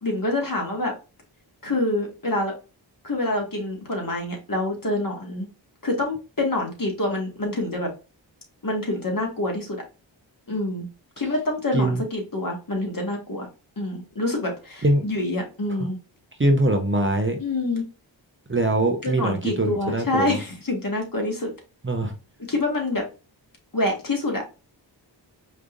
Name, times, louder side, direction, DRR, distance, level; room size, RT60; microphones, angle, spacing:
voice 1, 0.0-0.9 1.6-2.5 3.0-5.5 5.8-7.9 8.6-9.8 10.5-10.9 11.2-13.5 13.8-16.0 17.4-17.8 19.0-21.5 22.5-23.0 23.7-24.4, left 2 dB, 45° left, 1.9 m, -26 dB
voice 2, 16.4-17.4 18.5-20.4 21.8-22.1, right 1 dB, 25° right, 0.8 m, -22 dB
5.0 x 3.3 x 2.5 m
wide cardioid pair, 50°, 46 cm